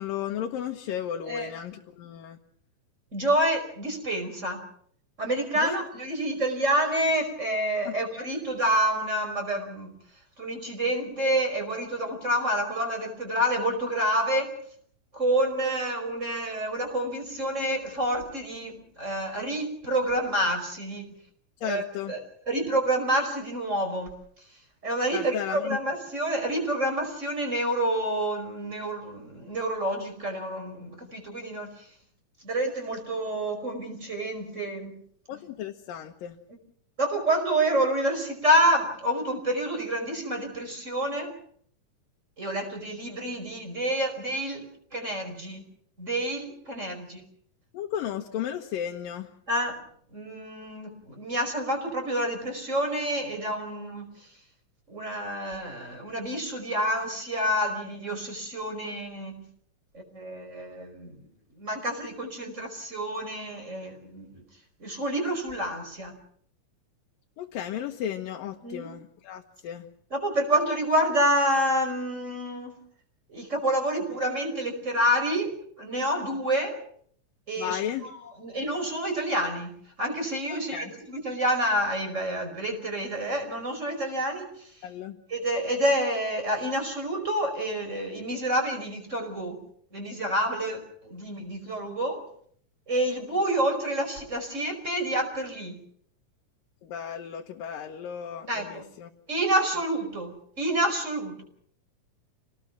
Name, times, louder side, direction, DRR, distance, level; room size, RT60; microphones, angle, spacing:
voice 1, 0.0-2.4 5.6-5.8 7.9-8.0 21.6-22.1 25.1-25.8 35.3-36.3 47.7-49.3 67.4-69.9 77.6-78.1 80.5-80.9 84.8-85.2 96.8-99.1, left 9 dB, 85° left, 2 dB, 2.9 m, -34 dB
voice 2, 3.1-4.6 5.2-9.9 10.4-14.6 15.1-21.1 21.6-24.1 24.8-31.9 32.4-35.0 37.0-41.3 42.4-45.6 46.0-47.2 49.5-49.8 50.1-54.1 54.9-59.5 59.9-61.2 61.6-64.4 64.8-66.2 68.6-68.9 70.1-72.8 73.3-76.8 77.5-84.7 85.3-89.6 89.9-92.2 92.9-95.8 98.5-98.8 99.3-101.4, right 1 dB, 20° right, 5 dB, 5.3 m, -28 dB
28.5 x 18.5 x 6.1 m, 0.62 s
omnidirectional pair, 3.9 m